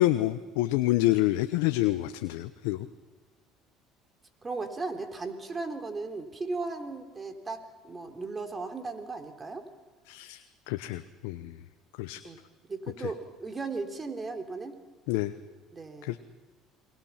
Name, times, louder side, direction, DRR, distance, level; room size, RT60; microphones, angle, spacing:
voice 1, 0.0-2.9 10.1-10.4 10.7-11.5 12.0-12.2 13.0-13.1 15.1-15.3 16.0-16.2, left 16 dB, 85° left, 10 dB, 0.9 m, -27 dB
voice 2, 4.4-9.6 12.2-12.4 12.7-14.8 15.7-16.2, right 3 dB, 25° right, 6 dB, 3.6 m, -36 dB
29.5 x 22.0 x 5.9 m, 1.3 s
supercardioid pair, 90°, 0 cm